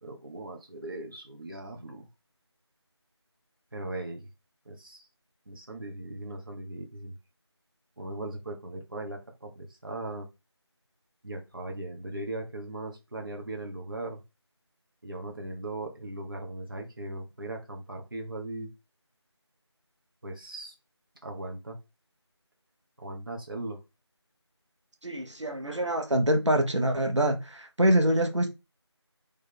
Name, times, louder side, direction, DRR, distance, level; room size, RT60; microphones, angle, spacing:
voice 1, 0.0-2.1 3.7-4.3 4.7-5.1 5.5-7.1 8.0-10.3 11.2-14.2 15.0-18.7 20.2-20.7 21.2-21.8 23.0-23.8, right 2 dB, 50° right, 1.0 m, -38 dB
voice 2, 25.0-28.5, right 1 dB, 90° right, 1.2 m, -25 dB
3.4 x 3.3 x 3.7 m
figure-of-eight pair, 175°, 15 cm